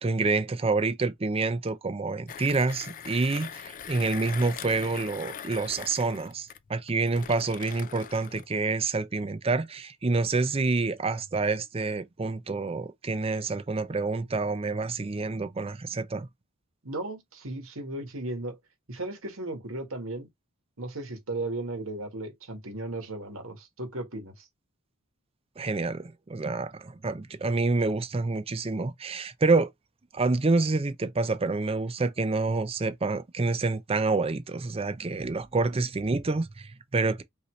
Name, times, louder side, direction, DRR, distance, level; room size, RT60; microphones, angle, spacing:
voice 1, 0.0-16.3 25.6-29.7 30.1-37.2, right 3 dB, 30° right, 0.5 m, -28 dB
Mechanisms, 2.3-8.5, left 8 dB, 40° left, 0.4 m, -42 dB
voice 2, 16.8-18.6 18.9-20.3 20.8-24.5, right 2 dB, 75° right, 1.7 m, -36 dB
5.6 x 2.8 x 3.1 m
head